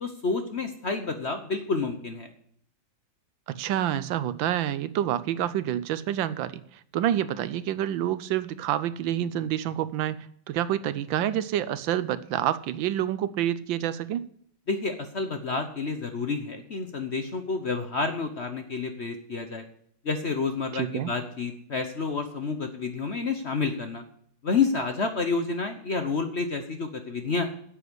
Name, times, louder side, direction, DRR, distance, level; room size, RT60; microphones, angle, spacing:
voice 1, 0.0-2.3 14.7-19.6 20.0-24.0 24.4-27.5, left 4 dB, 45° left, 6 dB, 0.9 m, -29 dB
voice 2, 3.5-6.6 6.9-14.2 20.7-21.1, right 11 dB, 80° right, 16 dB, 1.4 m, -28 dB
9.7 x 8.1 x 7.9 m, 0.64 s
omnidirectional pair, 2.2 m